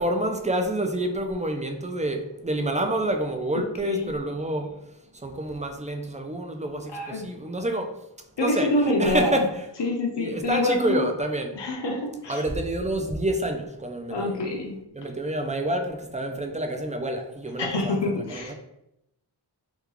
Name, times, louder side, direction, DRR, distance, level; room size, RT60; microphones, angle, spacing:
voice 1, 0.0-4.8 5.2-8.0 8.4-9.7 10.2-11.6 12.3-14.4 14.9-18.5, right 1 dB, 15° right, 0.4 m, -28 dB
voice 2, 3.5-4.1 6.9-7.3 8.4-9.4 9.8-11.0 11.6-12.4 14.1-14.8 17.6-18.5, left 1 dB, 75° left, 0.7 m, -26 dB
3.5 x 2.3 x 3.1 m
wide cardioid pair, 55°, 42 cm